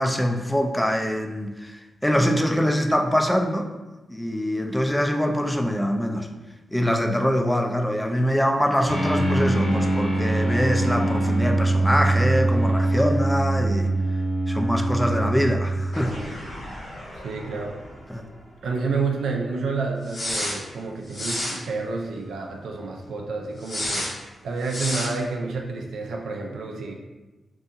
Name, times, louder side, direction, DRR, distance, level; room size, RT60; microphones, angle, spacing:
voice 1, 0.0-3.7 4.1-6.3 6.7-13.9 14.5-16.2 18.1-18.2, equal, 10° left, 4 dB, 0.4 m, -24 dB
sound 1, 8.9-18.0 18.3-18.4 20.1-20.6 21.1-21.6 23.6-24.1 24.6-25.1, right 1 dB, 75° left, 1.2 m, -24 dB
voice 2, 17.1-17.8 18.6-26.9, right 4 dB, 80° right, 1 dB, 0.3 m, -29 dB
2.6 x 2.6 x 2.4 m, 1.1 s
supercardioid pair, 40°, 0 cm